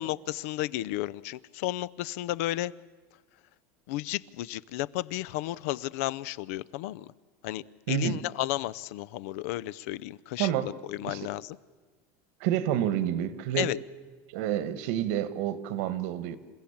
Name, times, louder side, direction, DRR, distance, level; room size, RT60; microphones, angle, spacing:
voice 1, 0.0-2.7 3.9-7.1 7.4-11.6 13.6-13.8, left 16 dB, 70° left, 20 dB, 0.6 m, -33 dB
voice 2, 7.9-8.2 10.4-10.7 11.0-11.2 12.4-13.7 14.3-16.4, right 11 dB, 65° right, 14 dB, 1.5 m, -29 dB
27.5 x 15.5 x 8.7 m, 1.4 s
supercardioid pair, 160°, 8 cm